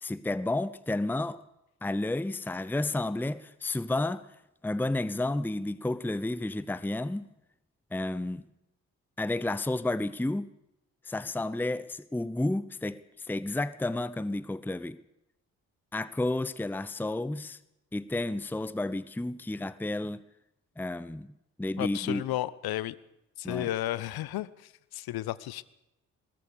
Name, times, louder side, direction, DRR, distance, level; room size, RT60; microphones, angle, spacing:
voice 1, 0.0-1.4 1.8-4.3 4.6-7.3 7.9-8.4 9.2-10.5 11.1-15.0 15.9-17.6 17.9-20.2 20.8-21.3 21.6-22.2 23.4-23.7, left 2 dB, 5° left, 0.9 m, -31 dB
voice 2, 21.8-23.0 23.4-25.6, left 14 dB, 60° left, 1.0 m, -33 dB
21.0 x 18.5 x 6.9 m
figure-of-eight pair, 40°, 42 cm